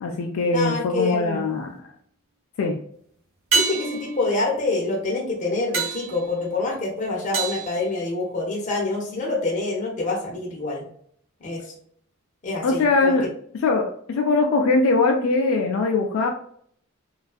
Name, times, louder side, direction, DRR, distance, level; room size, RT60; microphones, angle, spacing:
voice 1, 0.0-1.8 2.6-2.7 12.6-13.3 13.6-16.3, left 3 dB, 80° left, 2 dB, 0.3 m, -21 dB
voice 2, 0.5-1.4 3.5-10.8 11.4-11.7 12.4-13.2, left 2 dB, 40° left, -1 dB, 0.6 m, -26 dB
sound 1, 1.2-1.8 3.5-8.7 13.1-13.2, right 5 dB, 85° right, 0.9 m, -30 dB
2.5 x 2.3 x 2.3 m, 0.63 s
head